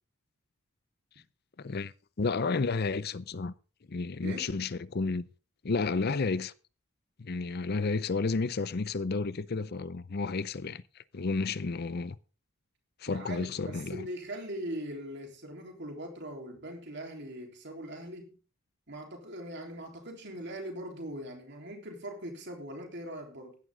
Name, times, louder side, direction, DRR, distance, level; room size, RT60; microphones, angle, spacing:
voice 1, 1.6-3.5 3.9-5.2 5.6-6.5 7.2-10.8 11.1-12.2 13.0-14.1, left 4 dB, 45° left, 0.5 m, -31 dB
voice 2, 13.1-18.3 18.9-23.6, right 1 dB, 55° right, 3.6 m, -41 dB
15.5 x 11.0 x 3.7 m
head